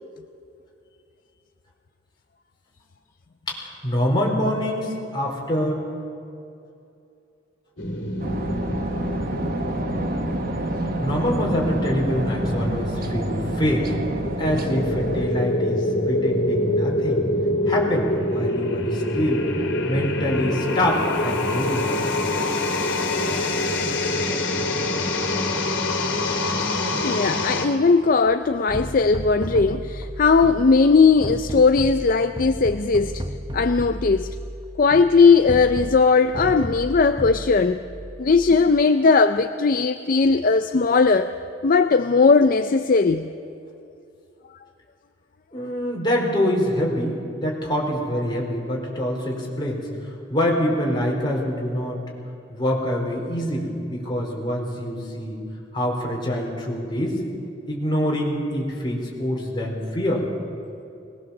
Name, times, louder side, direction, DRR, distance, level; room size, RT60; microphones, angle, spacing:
voice 1, 3.5-5.8 11.0-13.9 14.4-17.3 17.7-19.5 19.8-22.0 45.5-52.0 52.5-55.4 55.7-57.3 57.7-60.3, equal, 25° left, 4.5 m, -25 dB
sound 1, 7.8-27.7, left 1 dB, 80° left, 2.7 m, -25 dB
sound 2, 8.2-15.3, right 2 dB, 50° right, 1.2 m, -30 dB
voice 2, 27.0-33.2 33.5-34.4 34.8-37.8 38.2-41.3 41.6-43.3, left 4 dB, 45° left, 0.5 m, -18 dB
sound 3, 28.7-38.8, right 1 dB, 25° right, 0.8 m, -34 dB
21.5 x 20.0 x 7.2 m
head